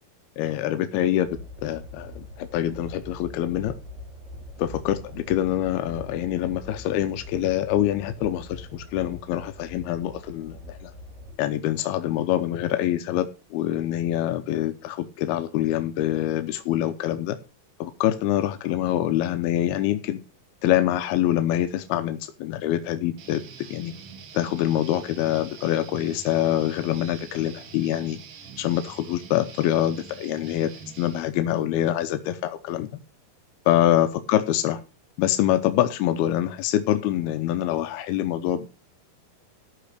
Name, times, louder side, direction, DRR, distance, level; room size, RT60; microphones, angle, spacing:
voice 1, 0.4-3.7 4.6-10.9 11.4-17.4 17.8-20.2 20.6-23.4 23.7-23.9 24.3-28.2 28.6-30.7 31.0-32.9 33.7-34.8 35.2-38.7, left 12 dB, 85° left, 2.7 m, -25 dB
sound 1, 1.2-11.3, left 1 dB, 85° right, 5.6 m, -42 dB
Guitar, 23.2-31.2, right 6 dB, 65° right, 2.9 m, -44 dB
13.5 x 5.0 x 6.6 m
omnidirectional pair, 4.4 m